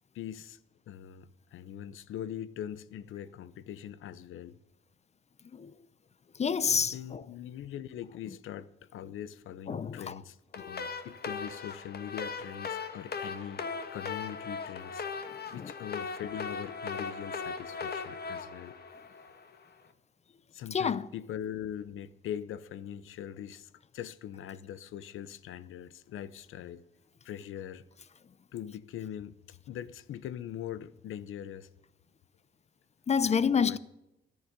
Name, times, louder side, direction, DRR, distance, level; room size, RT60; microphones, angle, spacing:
voice 1, 0.1-0.6 0.9-4.6 6.9-13.6 13.9-15.0 15.5-18.7 20.5-26.8 27.2-27.8 28.5-29.3 29.7-31.7 33.2-33.8, left 10 dB, 90° left, 0.8 m, -42 dB
voice 2, 6.4-7.2 9.7-10.1 15.6-15.7 20.7-21.1 33.1-33.8, left 6 dB, 35° left, 0.6 m, -28 dB
sound 1, 10.5-19.6, left 5 dB, 50° left, 1.5 m, -38 dB
13.5 x 10.5 x 6.7 m
cardioid pair, 110°, 20 cm